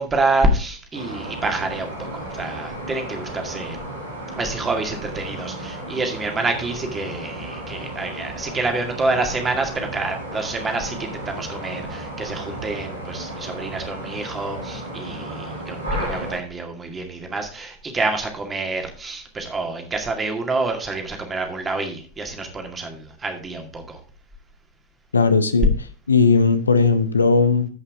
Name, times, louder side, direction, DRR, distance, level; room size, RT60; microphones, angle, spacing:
voice 1, 0.0-3.8 4.4-24.0, right 2 dB, 15° right, 4 dB, 2.2 m, -27 dB
sound 1, 0.9-16.4, right 1 dB, 80° right, 3.0 m, -34 dB
voice 2, 25.1-25.7 26.1-27.7, left 4 dB, 75° left, 11 dB, 0.9 m, -17 dB
14.0 x 5.6 x 3.5 m, 0.38 s
figure-of-eight pair, 90°, 0 cm